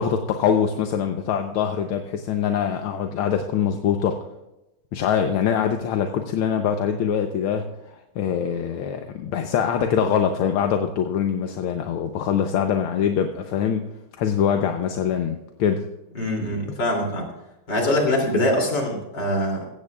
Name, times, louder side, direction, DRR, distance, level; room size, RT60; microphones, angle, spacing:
voice 1, 0.0-4.2 4.9-13.9 14.2-15.9, left 8 dB, 75° left, 5 dB, 1.7 m, -23 dB
voice 2, 16.2-17.3 17.7-19.7, left 1 dB, 50° left, 0 dB, 3.6 m, -23 dB
16.5 x 15.5 x 2.4 m, 0.94 s
omnidirectional pair, 2.4 m